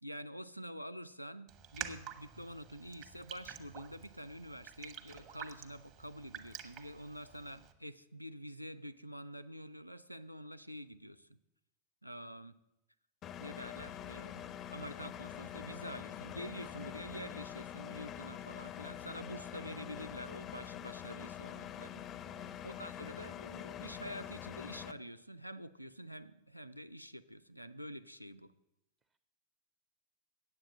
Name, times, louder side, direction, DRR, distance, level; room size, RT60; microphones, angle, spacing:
voice 1, 0.0-11.3 12.0-12.6 13.4-22.1 22.6-28.5, equal, 90° left, 9 dB, 0.4 m, -47 dB
Raindrop, 1.5-7.7, right 9 dB, 40° right, 1.0 m, -49 dB
Engine, 13.2-24.9, left 10 dB, 30° left, 0.4 m, -45 dB
sound 1, 13.7-19.3, equal, 80° right, 0.8 m, -60 dB
voice 2, 22.3-22.6 29.1-29.2, right 8 dB, 25° right, 8 dB, 0.5 m, -61 dB
8.7 x 7.9 x 7.5 m, 0.89 s
figure-of-eight pair, 90°, 0 cm